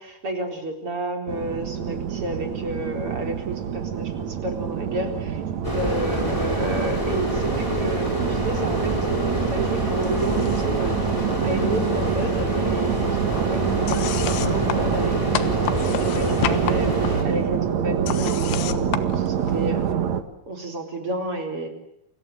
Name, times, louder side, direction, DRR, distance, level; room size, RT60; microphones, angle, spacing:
voice 1, 0.0-5.4 5.7-11.1 11.4-19.8 20.5-21.7, right 1 dB, 35° right, 4 dB, 4.7 m, -31 dB
sound 1, 1.3-20.2, right 8 dB, 55° right, 2.2 m, -26 dB
sound 2, 5.6-17.2, equal, 5° left, 5.4 m, -27 dB
sound 3, 10.0-10.8 11.1-12.1 12.4-19.9, left 12 dB, 85° left, 3.5 m, -33 dB
29.5 x 25.0 x 7.9 m, 0.76 s
omnidirectional pair, 4.9 m